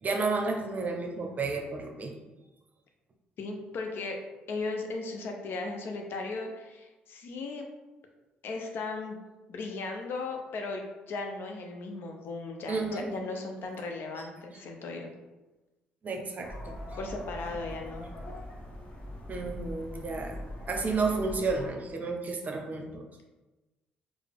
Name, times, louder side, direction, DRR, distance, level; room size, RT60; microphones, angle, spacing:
voice 1, 0.0-2.2 12.7-13.1 14.2-14.3 16.0-16.7 19.3-20.4 20.7-23.0, right 3 dB, 40° right, 2 dB, 0.7 m, -31 dB
voice 2, 3.4-4.2 4.5-7.7 8.4-9.2 9.5-15.1 17.0-18.1, left 3 dB, 60° left, 3 dB, 0.6 m, -36 dB
sound 1, 16.4-21.7, left 1 dB, 30° left, 0.9 m, -41 dB
4.7 x 2.0 x 3.4 m, 1.1 s
hypercardioid pair, 55°, 4 cm